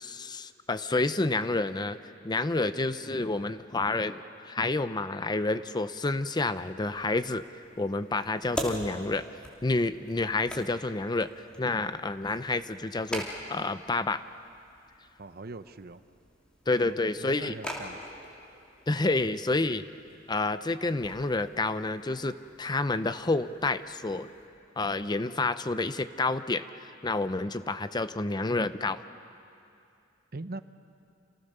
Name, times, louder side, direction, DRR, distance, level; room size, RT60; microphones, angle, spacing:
voice 1, 0.0-2.0 2.2-7.4 7.8-9.2 9.6-11.3 11.6-14.2 16.7-17.5 18.9-19.8 20.3-24.3 24.8-29.0, left 2 dB, 20° left, 12 dB, 0.6 m, -29 dB
sound 1, 6.8-24.5, equal, 5° left, 3.1 m, -44 dB
voice 2, 15.2-16.0 16.9-18.0 30.3-30.6, right 2 dB, 55° right, 11 dB, 0.9 m, -41 dB
29.5 x 28.0 x 6.8 m, 2.6 s
head